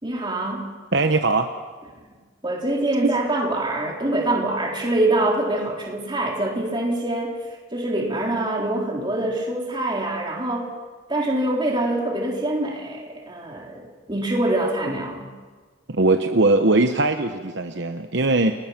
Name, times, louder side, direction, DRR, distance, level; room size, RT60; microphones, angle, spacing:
voice 1, 0.0-0.6 2.4-7.3 7.7-10.7 11.1-13.8 14.1-15.3, right 1 dB, 20° right, -1 dB, 3.9 m, -24 dB
voice 2, 0.9-1.5 15.9-18.5, right 2 dB, 55° right, 6 dB, 1.0 m, -20 dB
30.0 x 20.0 x 6.0 m, 1.4 s
head